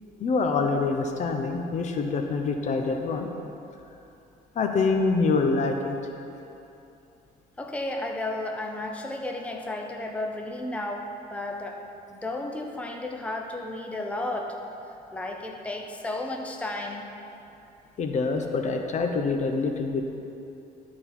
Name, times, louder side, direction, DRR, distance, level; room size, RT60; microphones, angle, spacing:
voice 1, 0.2-3.3 4.6-6.0 18.0-20.1, left 4 dB, 45° left, 4 dB, 0.7 m, -25 dB
voice 2, 7.6-11.8 12.1-14.6 15.1-17.0, left 2 dB, 10° left, 2 dB, 0.7 m, -33 dB
12.0 x 4.3 x 4.3 m, 2.8 s
cardioid pair, 110°, 17 cm